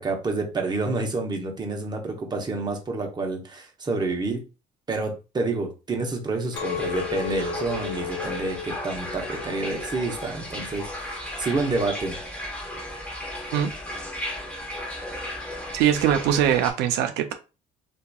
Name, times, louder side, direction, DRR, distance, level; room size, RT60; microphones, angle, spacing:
voice 1, 0.0-4.4 4.9-12.2, right 3 dB, 25° right, 0.8 m, -28 dB
sound 1, 6.5-16.7, left 1 dB, 10° left, 1.0 m, -35 dB
Chink clink, 6.6-11.7, left 8 dB, 80° left, 0.4 m, -35 dB
voice 2, 15.7-17.3, right 10 dB, 85° right, 0.4 m, -22 dB
2.9 x 2.4 x 2.2 m
cardioid pair, 110°, 17 cm